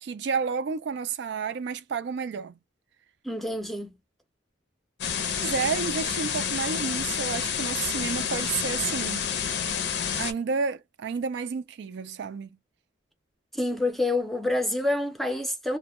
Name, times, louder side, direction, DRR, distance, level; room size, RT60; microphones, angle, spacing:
voice 1, 0.0-2.5 5.4-9.2 10.1-12.5, right 5 dB, 65° right, 0.3 m, -31 dB
voice 2, 3.2-3.9 13.5-15.8, left 2 dB, ahead, 0.5 m, -27 dB
sound 1, 5.0-10.3, left 7 dB, 65° left, 0.5 m, -29 dB
2.1 x 2.1 x 2.9 m
head